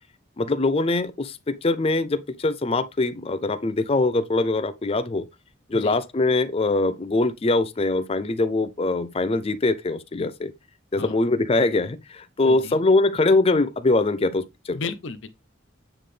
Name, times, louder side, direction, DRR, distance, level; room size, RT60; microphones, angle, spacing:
voice 1, 0.4-5.3 5.7-10.5 10.9-14.8, left 2 dB, 30° left, 0.4 m, -23 dB
voice 2, 12.5-12.8 14.7-15.3, left 4 dB, 65° left, 0.7 m, -34 dB
8.8 x 3.9 x 3.3 m
head